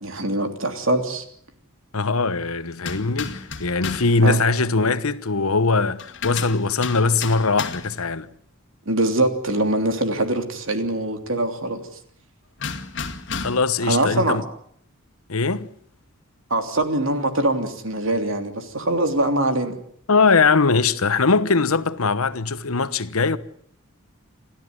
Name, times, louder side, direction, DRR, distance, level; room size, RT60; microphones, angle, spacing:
voice 1, 0.0-1.2 4.2-4.4 8.9-11.8 13.8-14.4 16.5-19.8, right 1 dB, 65° right, 3.2 m, -23 dB
voice 2, 1.9-8.3 13.3-14.4 15.3-15.7 20.1-23.4, left 4 dB, 80° left, 1.1 m, -21 dB
sound 1, 2.8-4.2 6.0-8.0 12.6-13.8, left 5 dB, 55° left, 2.1 m, -32 dB
29.0 x 13.5 x 9.8 m
head